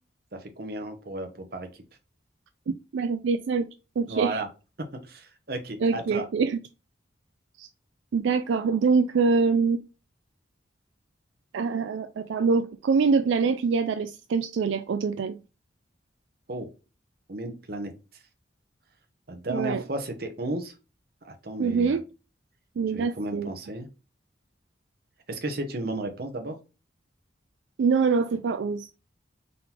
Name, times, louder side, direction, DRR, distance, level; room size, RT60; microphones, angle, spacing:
voice 1, 0.3-1.7 4.1-4.5 4.9-6.3 16.5-16.7 17.3-17.9 19.3-20.7 21.2-22.0 22.9-23.9 25.3-26.6, right 2 dB, 50° right, 0.9 m, -33 dB
voice 2, 2.7-3.6 4.0-4.4 5.8-6.6 7.6-7.7 8.1-9.8 11.5-15.4 19.5-19.8 21.6-22.0 22.8-23.5 27.8-28.9, right 5 dB, 80° right, 0.4 m, -24 dB
3.8 x 3.8 x 2.9 m
head